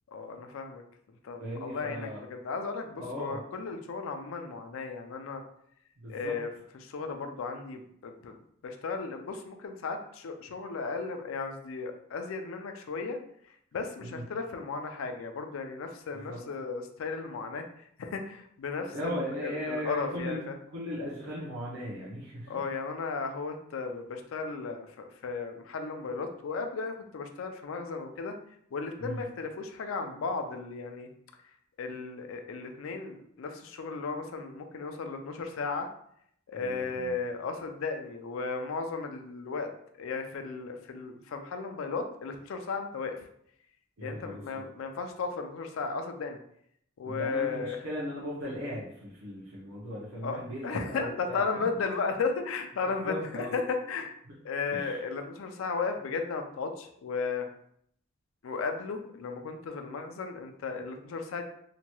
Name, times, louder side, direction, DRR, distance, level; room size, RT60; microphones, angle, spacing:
voice 1, 0.1-0.8 1.2-5.4 6.1-6.5 6.8-8.4 8.6-13.2 13.7-17.7 18.0-20.5 22.5-28.4 28.7-31.1 31.8-35.9 36.5-39.7 40.0-43.2 44.0-46.4 47.0-47.8 50.2-50.4 50.6-54.1 54.4-57.5 58.4-61.4, left 4 dB, 75° left, 6 dB, 0.4 m, -35 dB
voice 2, 1.4-2.2 2.9-3.4 6.0-6.4 14.0-14.2 16.1-16.4 18.9-20.5 20.7-22.5 29.0-29.2 36.6-37.1 44.0-44.6 47.0-51.7 53.0-53.5 54.3-54.4 54.7-55.0, equal, 80° right, -7 dB, 0.7 m, -37 dB
2.8 x 2.2 x 2.9 m, 0.70 s
head